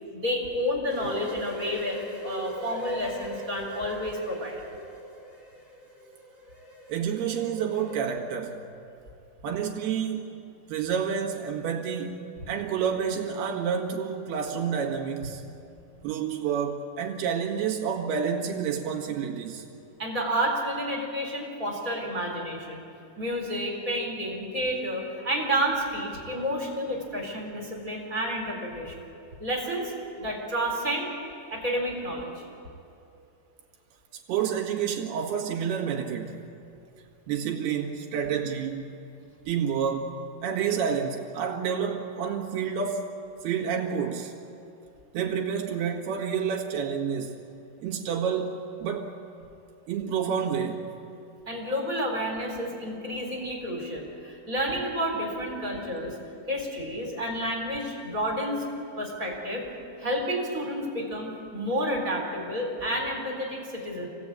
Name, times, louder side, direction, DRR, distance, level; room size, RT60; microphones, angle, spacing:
voice 1, 0.1-4.6 20.0-22.8 23.2-29.0 29.4-29.9 30.2-31.1 31.5-32.3 51.4-56.2 56.5-58.7 59.0-59.7 60.0-64.1, equal, 20° right, 0 dB, 3.4 m, -30 dB
sound 1, 0.9-8.0, equal, 25° left, 5.1 m, -41 dB
voice 2, 6.9-8.6 9.4-10.3 10.7-15.4 16.0-19.7 34.3-36.4 37.3-39.0 39.5-40.2 40.4-43.1 43.4-44.3 45.1-47.4 47.8-49.1 49.9-51.0, right 7 dB, 75° right, 0 dB, 3.8 m, -29 dB
27.0 x 17.0 x 8.7 m, 2.7 s
omnidirectional pair, 4.7 m